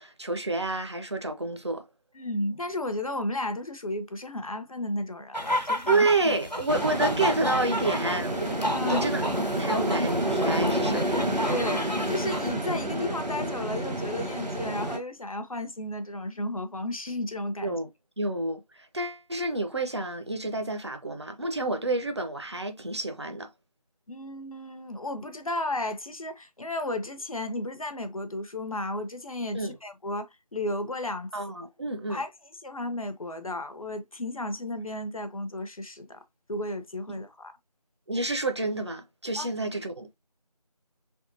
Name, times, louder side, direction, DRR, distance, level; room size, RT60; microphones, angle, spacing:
voice 1, 0.0-1.9 5.5-9.3 9.6-11.0 17.6-17.9 18.2-18.6 18.9-23.5 29.5-29.8 31.3-32.2 37.1-37.2 38.1-40.1, right 2 dB, 40° right, 0.5 m, -29 dB
voice 2, 2.1-6.4 8.7-9.1 11.5-17.8 24.1-31.3 32.1-32.3 32.6-36.2 36.5-37.5 39.4-39.5, left 1 dB, 55° left, 0.7 m, -33 dB
sound 1, 5.3-12.5, equal, 85° left, 1.1 m, -32 dB
sound 2, 6.7-15.0, right 1 dB, 80° right, 1.2 m, -29 dB
3.5 x 3.1 x 2.5 m
figure-of-eight pair, 170°, 21 cm